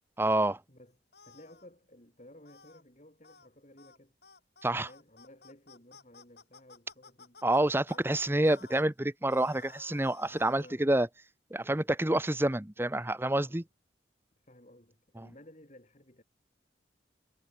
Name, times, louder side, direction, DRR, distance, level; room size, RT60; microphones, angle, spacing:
voice 1, 0.2-0.6 4.6-4.9 7.4-11.1 11.5-13.6 15.2-15.3, right 1 dB, 15° right, 1.0 m, -28 dB
sound 1, 1.1-1.7 2.4-2.8 3.2-3.5 3.8-4.0 4.2-8.8 9.3-10.8, left 4 dB, 65° left, 7.0 m, -55 dB
voice 2, 1.2-4.2 4.8-7.4 7.9-8.1 10.3-10.9 13.3-13.7 14.4-16.2, left 1 dB, 40° left, 7.4 m, -56 dB
head